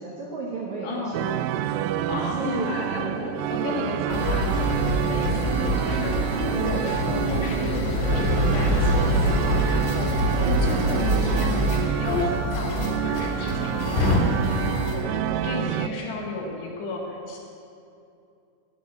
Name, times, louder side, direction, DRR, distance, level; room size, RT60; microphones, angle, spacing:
voice 1, 0.0-1.8 2.2-2.7 3.5-3.9 6.4-6.8 10.3-10.6 15.2-16.0, right 3 dB, 65° right, -4 dB, 1.8 m, -35 dB
voice 2, 0.8-1.2 2.1-17.4, left 3 dB, 65° left, -1 dB, 3.6 m, -34 dB
sound 1, 1.1-15.9, right 12 dB, 90° right, 3.1 m, -28 dB
sound 2, 4.1-14.9, equal, 85° left, 4.9 m, -25 dB
13.5 x 8.1 x 9.0 m, 2.6 s
omnidirectional pair, 5.6 m